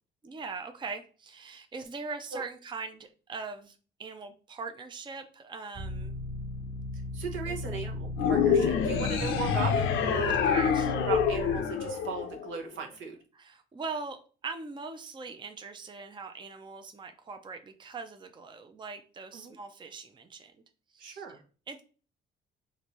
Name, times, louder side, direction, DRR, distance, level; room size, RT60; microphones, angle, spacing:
voice 1, 0.2-6.1 7.4-7.9 10.4-10.9 13.3-20.5 20.9-21.2 21.7-21.8, right 4 dB, 25° right, 6 dB, 0.5 m, -41 dB
sound 1, 5.7-11.6, left 2 dB, 50° right, 1.2 m, -37 dB
voice 2, 7.1-10.7 11.1-13.2 19.3-19.5 21.0-21.4, right 5 dB, 75° right, 1 dB, 0.9 m, -37 dB
sound 2, 8.2-12.7, left 7 dB, 85° left, 0.5 m, -27 dB
3.9 x 2.6 x 3.0 m, 0.37 s
cardioid pair, 90°, 20 cm